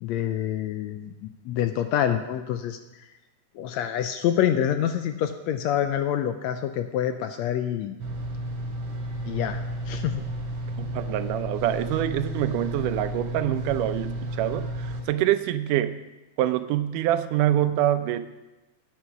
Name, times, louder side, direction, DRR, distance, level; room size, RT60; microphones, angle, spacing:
voice 1, 0.0-2.8 3.5-8.0 9.2-9.6 9.9-10.3, left 10 dB, 80° left, 8 dB, 1.6 m, -26 dB
sound 1, 8.0-15.0, right 1 dB, 50° right, 2.8 m, -32 dB
voice 2, 10.8-16.0 16.4-18.3, right 12 dB, 90° right, 11 dB, 2.2 m, -25 dB
11.5 x 9.8 x 6.0 m, 1.0 s
omnidirectional pair, 3.6 m